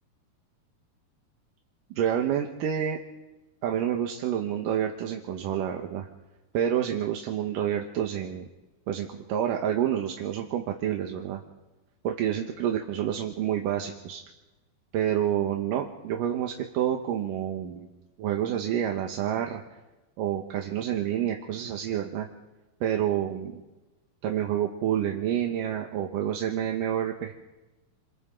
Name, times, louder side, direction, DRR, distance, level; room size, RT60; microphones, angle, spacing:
voice 1, 2.0-3.0 3.6-6.1 6.5-8.5 8.9-11.4 12.0-14.2 14.9-17.9 18.2-19.6 20.2-22.3 22.8-23.6 24.2-27.3, right 10 dB, 70° right, 2 dB, 2.6 m, -28 dB
28.0 x 28.0 x 3.7 m, 1.1 s
omnidirectional pair, 4.4 m